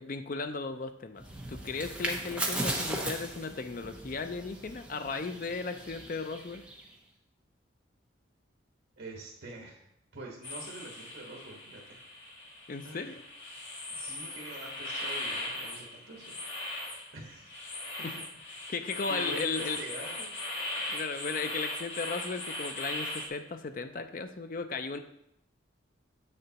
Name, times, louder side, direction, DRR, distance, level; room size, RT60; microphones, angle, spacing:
voice 1, 0.0-6.6 12.7-13.2 18.0-18.1 18.7-19.8 20.9-25.0, left 4 dB, 45° left, 8 dB, 0.4 m, -36 dB
sound 1, 1.2-6.9, right 1 dB, 5° right, 0.7 m, -37 dB
voice 2, 9.0-9.9 10.1-12.0 12.8-13.2 13.9-16.3 17.1-17.6 18.6-18.7 19.1-20.3, right 2 dB, 70° right, -2 dB, 1.3 m, -45 dB
sound 2, 10.4-23.3, left 2 dB, 80° left, 1.7 m, -39 dB
7.1 x 6.6 x 2.9 m, 0.79 s
head